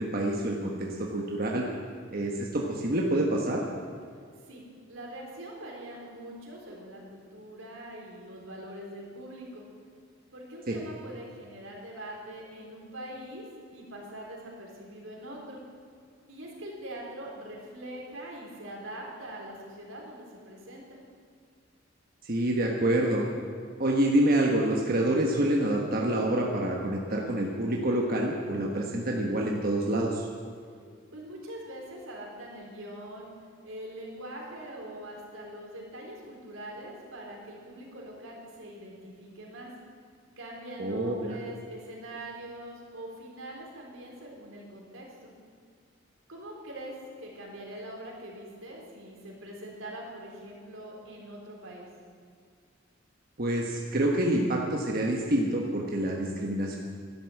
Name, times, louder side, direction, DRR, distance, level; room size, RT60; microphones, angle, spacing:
voice 1, 0.0-1.6 2.1-3.6 10.7-10.8 22.2-23.2 23.8-30.3 40.8-41.4 53.4-56.8, right 1 dB, 50° right, -1 dB, 1.4 m, -27 dB
voice 2, 4.9-9.6 10.3-13.5 13.7-15.6 16.3-21.0 31.1-33.3 33.6-39.7 40.4-45.3 46.3-51.9, right 1 dB, 90° right, -2 dB, 3.8 m, -43 dB
12.0 x 12.0 x 7.8 m, 2.1 s
head